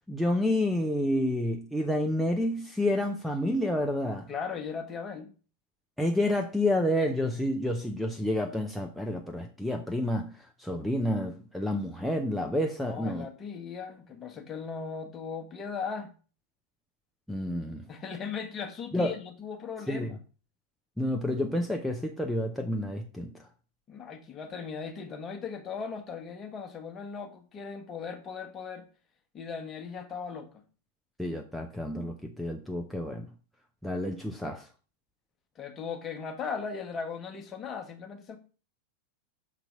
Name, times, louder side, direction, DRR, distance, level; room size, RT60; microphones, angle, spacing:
voice 1, 0.1-4.3 6.0-13.3 17.3-17.8 18.9-19.1 19.9-20.1 21.0-23.3 31.2-33.3 33.8-34.7, left 1 dB, ahead, 0.6 m, -29 dB
voice 2, 4.3-5.3 12.8-16.1 17.9-20.2 23.9-28.9 29.3-30.6 35.6-38.4, left 6 dB, 25° left, 1.1 m, -38 dB
5.9 x 4.0 x 5.2 m
figure-of-eight pair, 90°, 0 cm